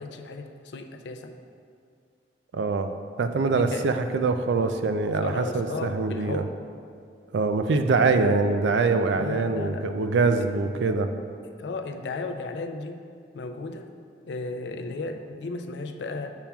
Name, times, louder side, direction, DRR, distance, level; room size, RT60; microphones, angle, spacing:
voice 1, 0.0-1.4 3.4-3.9 5.2-6.5 9.1-9.9 11.4-13.0 13.3-13.9 14.3-16.3, left 3 dB, 80° left, 5 dB, 0.4 m, -35 dB
voice 2, 2.5-6.4 7.3-11.1, right 3 dB, 85° right, 8 dB, 0.4 m, -24 dB
7.2 x 6.9 x 2.3 m, 2.3 s
head